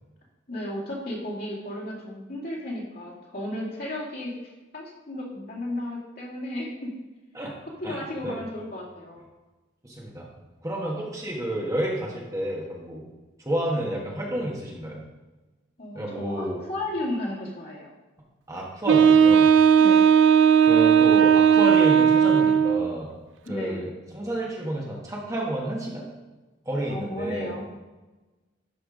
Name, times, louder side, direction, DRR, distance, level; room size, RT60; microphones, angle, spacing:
voice 1, 0.5-6.9 7.8-9.2 15.8-17.9 19.8-20.1 23.4-23.9 26.9-27.6, left 1 dB, 50° left, -5 dB, 2.3 m, -34 dB
voice 2, 7.8-8.4 9.8-10.3 10.6-13.0 13.4-15.0 15.9-16.6 18.5-19.5 20.6-23.1 23.5-26.0 26.6-27.5, right 1 dB, 15° right, -3 dB, 1.3 m, -30 dB
Wind instrument woodwind instrument, 18.9-23.0, right 8 dB, 65° right, 0.3 m, -17 dB
12.0 x 4.4 x 5.0 m, 1.2 s
head